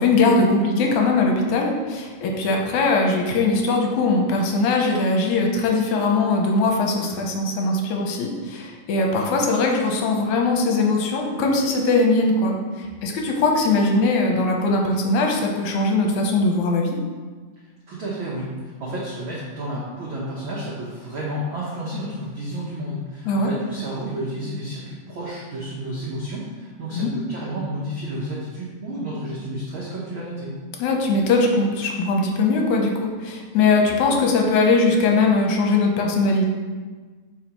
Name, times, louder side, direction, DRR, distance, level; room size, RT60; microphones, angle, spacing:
voice 1, 0.0-12.6 13.0-17.0 23.3-23.5 26.9-27.1 30.8-36.5, left 3 dB, 75° left, 1 dB, 2.1 m, -20 dB
voice 2, 17.9-30.5, right 1 dB, 80° right, -6 dB, 1.1 m, -31 dB
8.5 x 4.8 x 3.0 m, 1.4 s
omnidirectional pair, 3.8 m